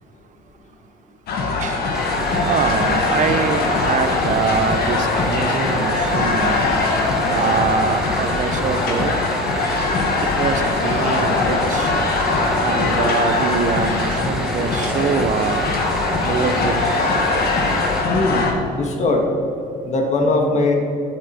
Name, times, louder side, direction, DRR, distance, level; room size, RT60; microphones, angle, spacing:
sound 1, 1.3-18.5, left 3 dB, 65° left, 1.6 m, -21 dB
sound 2, 1.9-18.0, right 1 dB, ahead, 1.4 m, -28 dB
voice 1, 2.4-6.6 7.3-9.1 10.2-11.9 12.6-15.7 16.2-16.8, right 6 dB, 50° right, 10 dB, 0.8 m, -24 dB
voice 2, 18.1-19.3 19.8-20.8, left 2 dB, 45° left, 3 dB, 1.6 m, -20 dB
12.5 x 7.5 x 4.4 m, 2.7 s
cardioid pair, 110°, 17 cm